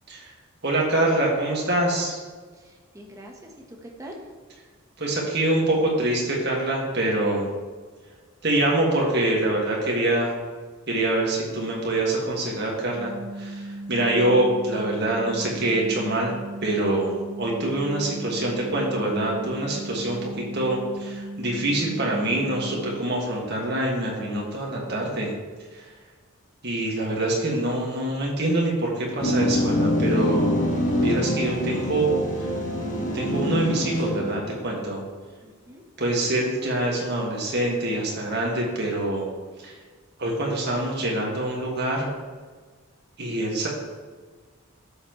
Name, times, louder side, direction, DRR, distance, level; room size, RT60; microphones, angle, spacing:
voice 1, 0.6-2.2 5.0-7.5 8.4-10.4 10.9-16.3 16.6-25.3 25.7-25.9 26.6-32.1 32.4-32.5 33.1-35.0 36.0-39.3 39.6-39.8 40.2-42.1 43.2-43.7, right 1 dB, 50° right, -2 dB, 1.9 m, -25 dB
voice 2, 2.5-4.2 35.4-35.8, right 1 dB, 15° right, 0 dB, 1.1 m, -44 dB
sound 1, 13.0-23.0, right 1 dB, 5° left, 1.3 m, -37 dB
sound 2, 29.2-34.5, left 1 dB, 35° left, 1.6 m, -25 dB
12.5 x 7.0 x 3.1 m, 1.5 s
head